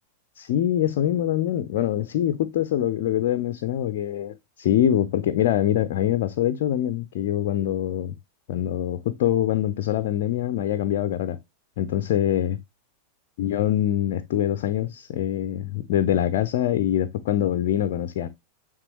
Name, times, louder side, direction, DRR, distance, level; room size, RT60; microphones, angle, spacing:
voice 1, 0.4-8.1 8.5-11.4 11.8-12.6 13.4-18.3, left 11 dB, 50° left, 0.5 m, -24 dB
8.9 x 3.7 x 3.1 m
figure-of-eight pair, 90°, 0 cm